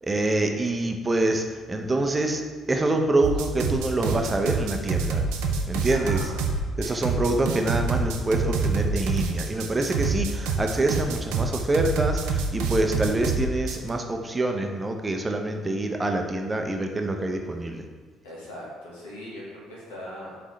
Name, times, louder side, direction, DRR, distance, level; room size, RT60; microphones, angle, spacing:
voice 1, 0.0-2.4 2.7-6.3 6.8-17.8, right 2 dB, 25° right, 4 dB, 0.6 m, -26 dB
sound 1, 3.2-13.9, right 4 dB, 80° right, 0.4 m, -26 dB
voice 2, 5.9-6.4 6.8-7.0 18.2-20.4, equal, 90° left, -5 dB, 1.1 m, -40 dB
3.8 x 3.7 x 3.1 m, 1.4 s
hypercardioid pair, 55°, 0 cm